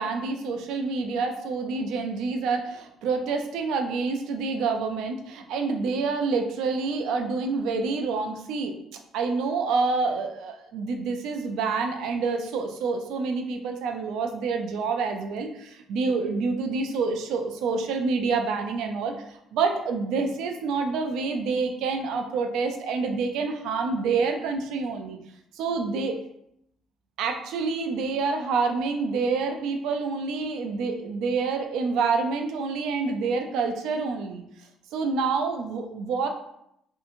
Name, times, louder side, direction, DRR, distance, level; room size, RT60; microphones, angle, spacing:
voice 1, 0.0-2.8 3.0-8.7 9.1-25.2 25.6-26.1 27.2-34.4 34.9-36.3, right 4 dB, 80° right, 4 dB, 0.3 m, -27 dB
2.7 x 2.4 x 2.5 m, 0.76 s
cardioid pair, 170°, 0 cm